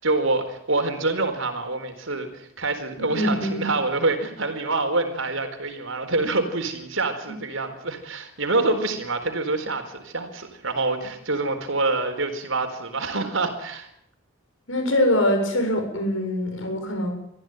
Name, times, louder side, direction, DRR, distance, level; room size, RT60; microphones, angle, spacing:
voice 1, 0.0-13.9, right 3 dB, 80° right, 7 dB, 4.3 m, -26 dB
voice 2, 3.0-3.7 14.7-17.1, left 1 dB, 75° left, 4 dB, 7.6 m, -23 dB
24.5 x 15.5 x 9.2 m, 0.74 s
head